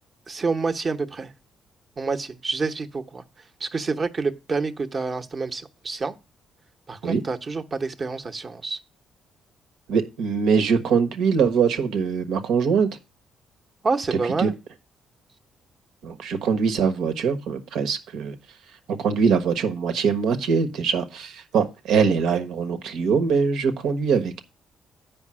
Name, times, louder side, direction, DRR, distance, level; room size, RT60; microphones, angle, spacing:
voice 1, 0.3-1.3 2.0-3.2 3.6-6.1 6.9-8.8 13.8-14.5, right 4 dB, 40° right, 1.0 m, -28 dB
voice 2, 9.9-12.9 14.4-14.5 16.0-18.3 18.9-24.4, right 6 dB, 85° right, 1.2 m, -22 dB
8.9 x 5.2 x 6.2 m
cardioid pair, 90°, 0 cm